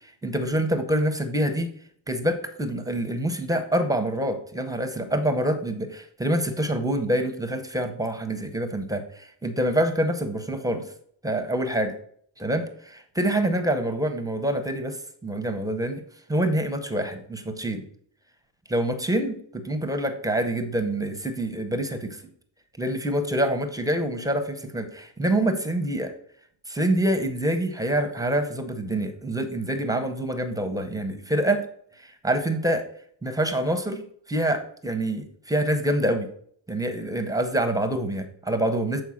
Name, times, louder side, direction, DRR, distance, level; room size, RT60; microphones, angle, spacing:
voice 1, 0.2-1.7 2.1-10.8 11.2-12.0 12.4-16.0 16.3-17.8 18.7-22.2 22.8-26.1 26.7-31.6 32.0-32.8 33.2-36.3 36.7-39.0, right 1 dB, 10° right, 7 dB, 0.6 m, -26 dB
7.0 x 4.6 x 6.2 m, 0.62 s
cardioid pair, 170°, 47 cm